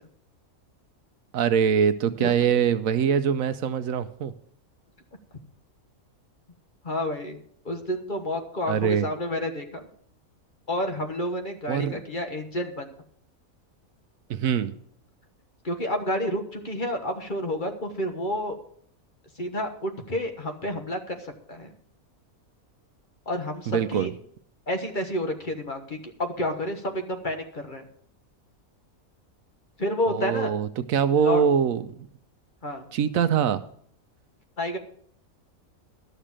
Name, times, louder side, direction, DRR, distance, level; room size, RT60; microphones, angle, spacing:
voice 1, 1.3-4.3 8.7-9.1 11.7-12.0 14.3-14.7 23.7-24.1 30.1-32.1 32.9-33.6, right 7 dB, 75° right, 12 dB, 1.1 m, -23 dB
voice 2, 6.8-9.9 10.7-12.9 15.6-18.5 19.4-21.7 23.3-24.1 24.7-27.8 29.8-30.5 31.2-31.4 32.6-32.8 34.6-34.8, left 1 dB, 35° left, 5 dB, 1.4 m, -30 dB
12.5 x 6.7 x 7.4 m, 0.63 s
omnidirectional pair, 1.5 m